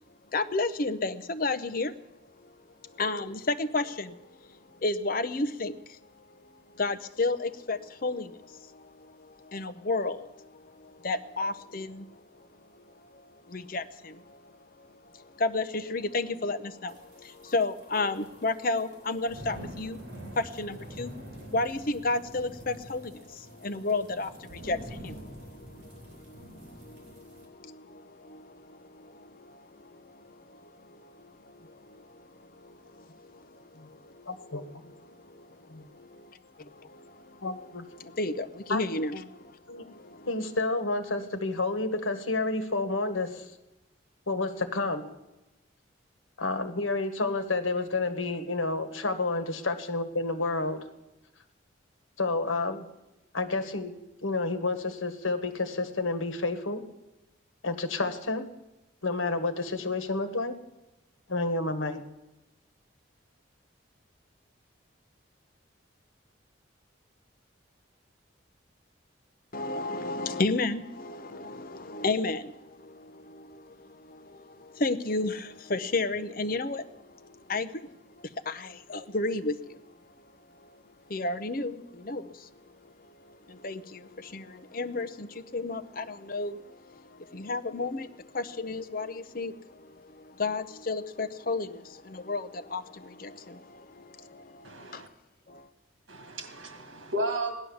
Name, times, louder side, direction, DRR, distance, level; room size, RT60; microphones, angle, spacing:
voice 1, 0.3-2.0 2.4-2.5 2.8-6.0 6.4-12.5 12.7-34.6 34.8-37.5 38.0-40.3 69.5-79.9 80.6-80.8 81.1-82.7 83.0-95.0 95.5-95.7, left 3 dB, 45° left, 11 dB, 0.7 m, -33 dB
sound 1, 16.9-27.5, right 1 dB, 55° right, 3.4 m, -46 dB
voice 2, 34.3-34.6 37.4-37.9 38.7-38.8 39.7-39.8 40.3-43.5 44.3-45.1 46.4-50.8 52.2-52.8 53.3-53.9 54.2-56.8 57.6-58.5 59.0-60.5 61.3-62.0, left 3 dB, 85° left, 9 dB, 1.5 m, -30 dB
voice 3, 94.6-95.1 96.1-97.6, right 1 dB, 75° right, 6 dB, 2.0 m, -33 dB
17.0 x 11.0 x 7.1 m, 0.99 s
head